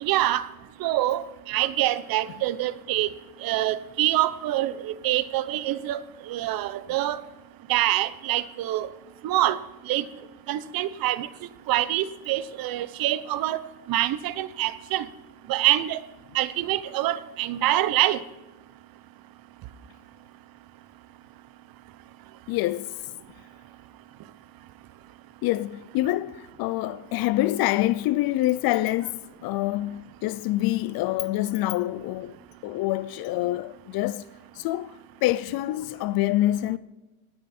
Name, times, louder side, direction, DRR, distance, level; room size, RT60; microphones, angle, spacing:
voice 1, 0.0-0.5 0.8-3.1 3.4-6.0 6.3-7.2 7.7-8.9 9.2-9.6 9.9-10.0 10.5-11.3 11.7-13.6 13.9-15.1 15.5-16.0 16.3-18.2, right 14 dB, 80° right, 0.8 m, -25 dB
voice 2, 22.5-23.0 25.4-32.3 32.6-34.3 34.5-36.8, left 16 dB, 90° left, 0.5 m, -26 dB
18.5 x 9.4 x 4.3 m
cardioid pair, 175°, 35 cm